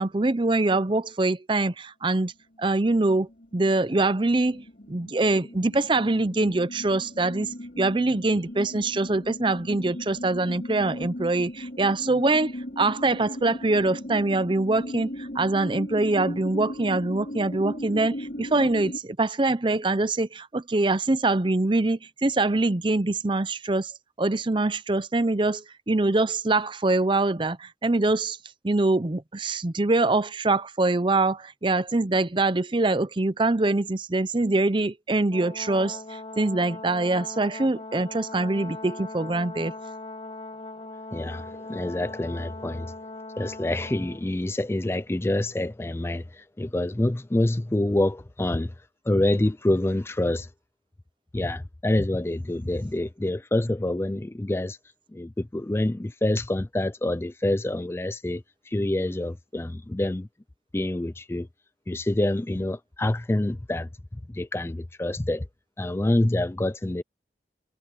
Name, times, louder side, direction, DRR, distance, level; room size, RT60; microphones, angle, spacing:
voice 1, 0.0-2.3 2.6-23.9 24.2-28.4 28.6-39.7, right 2 dB, 30° right, 0.7 m, -24 dB
sound 1, 2.6-2.9 3.3-19.0, left 1 dB, 50° left, 6.1 m, -37 dB
Brass instrument, 35.3-44.2, left 2 dB, 30° left, 1.3 m, -40 dB
voice 2, 41.1-42.9 43.4-48.7 49.1-50.5 51.3-54.8 55.1-60.3 60.7-61.5 61.9-63.9 64.3-65.4 65.8-67.0, left 1 dB, 15° left, 0.4 m, -26 dB
head